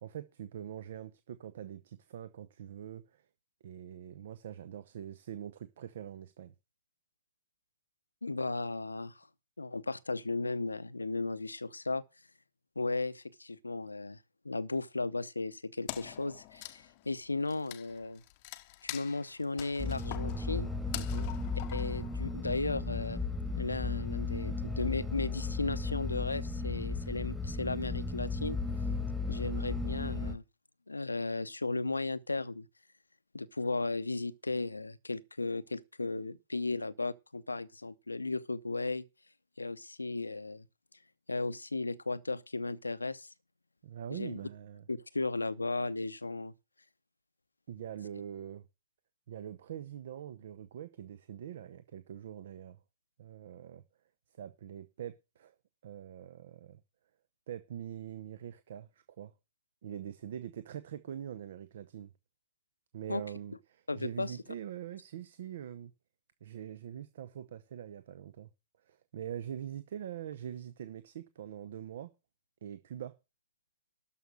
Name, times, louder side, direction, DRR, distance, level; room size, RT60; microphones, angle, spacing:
voice 1, 0.0-3.2 3.6-6.5 21.0-21.3 43.8-44.8 47.7-48.6 49.3-52.8 53.2-53.8 54.3-55.5 55.8-56.8 57.5-59.3 59.8-62.1 62.9-65.9 66.4-68.5 68.8-72.1 72.6-73.1, right 10 dB, 55° right, 0.7 m, -44 dB
voice 2, 8.2-9.3 9.6-12.0 12.8-14.2 14.4-18.2 18.8-20.7 21.7-23.2 23.6-28.6 29.3-30.4 30.9-32.7 33.3-39.0 39.6-40.7 41.3-43.3 44.1-44.4 44.9-46.5 63.1-63.2 63.9-64.4, left 3 dB, 85° left, 0.7 m, -35 dB
Wood, 15.9-22.6, left 18 dB, 40° left, 0.7 m, -46 dB
sound 1, 19.8-30.4, left 3 dB, ahead, 1.5 m, -35 dB
12.5 x 5.7 x 6.3 m
figure-of-eight pair, 110°, 0 cm